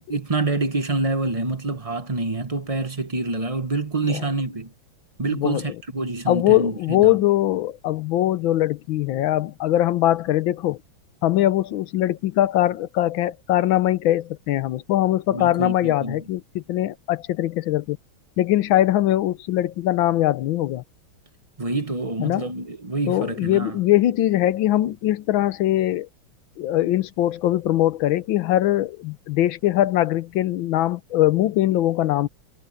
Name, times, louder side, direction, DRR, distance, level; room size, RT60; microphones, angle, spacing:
voice 1, 0.0-4.7 5.2-7.2 15.3-16.2 21.6-23.8, right 3 dB, 20° right, 1.0 m, -27 dB
voice 2, 5.3-5.6 6.3-10.8 11.2-18.0 18.4-20.8 22.2-22.5 23.1-26.1 26.6-32.3, left 14 dB, 75° left, 1.4 m, -21 dB
omnidirectional pair, 2.3 m